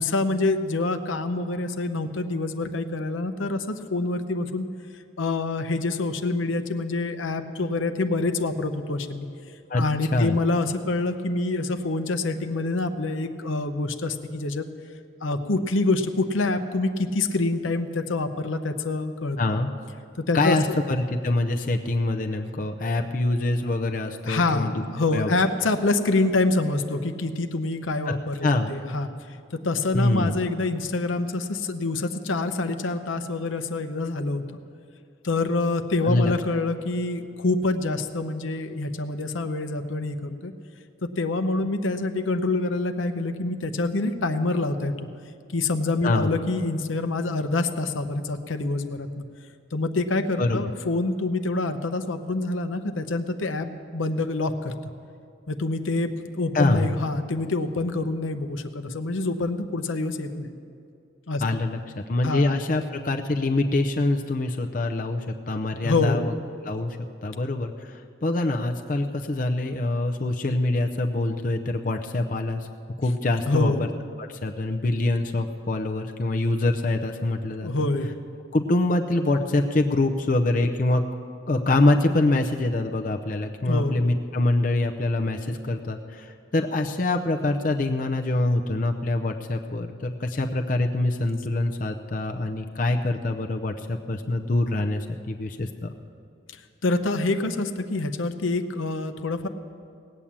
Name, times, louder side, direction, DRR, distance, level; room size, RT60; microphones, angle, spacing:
voice 1, 0.0-4.7 5.2-9.3 9.7-14.7 15.2-19.4 20.2-20.6 24.2-29.1 29.6-34.4 35.2-40.5 41.2-45.1 45.5-49.2 49.7-54.9 55.5-60.5 61.3-61.4 62.2-62.5 65.8-66.3 73.5-73.8 77.6-78.1 83.7-84.1 96.8-99.5, left 2 dB, 85° left, 8 dB, 0.8 m, -26 dB
voice 2, 19.4-19.7 20.3-24.7 25.1-25.3 28.1-28.2 28.4-28.7 29.9-30.4 36.0-36.3 46.0-46.3 50.4-50.6 56.5-56.9 61.4-66.3 66.6-67.0 67.2-72.7 73.0-73.9 74.2-77.7 78.5-81.0 81.5-95.9, left 2 dB, 40° left, 4 dB, 0.6 m, -25 dB
18.5 x 8.6 x 7.4 m, 2.5 s
head